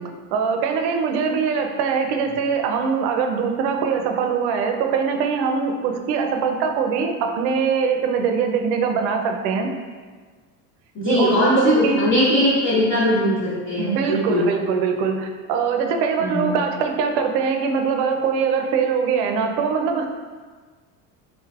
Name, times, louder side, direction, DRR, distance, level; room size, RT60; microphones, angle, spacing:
voice 1, 0.3-9.7 11.0-12.0 13.8-20.1, right 6 dB, 65° right, 4 dB, 0.6 m, -22 dB
voice 2, 10.9-14.4 16.2-16.5, left 1 dB, 35° left, -11 dB, 1.2 m, -20 dB
3.9 x 3.2 x 2.4 m, 1.5 s
supercardioid pair, 90°, 45 cm